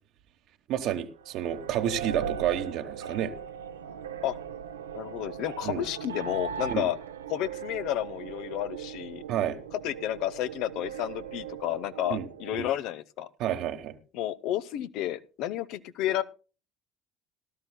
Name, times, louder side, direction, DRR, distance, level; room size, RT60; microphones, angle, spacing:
voice 1, 0.7-3.3 5.6-5.8 6.7-6.9 9.3-9.6 12.1-12.2 12.5-12.7 13.4-14.0, right 10 dB, 60° right, 1.1 m, -30 dB
sound 1, 1.2-12.5, right 8 dB, 80° right, 0.6 m, -39 dB
voice 2, 4.9-7.0 7.3-9.2 9.8-13.3 14.1-16.2, left 12 dB, 60° left, 0.7 m, -31 dB
18.0 x 12.5 x 2.2 m
figure-of-eight pair, 60°, 0 cm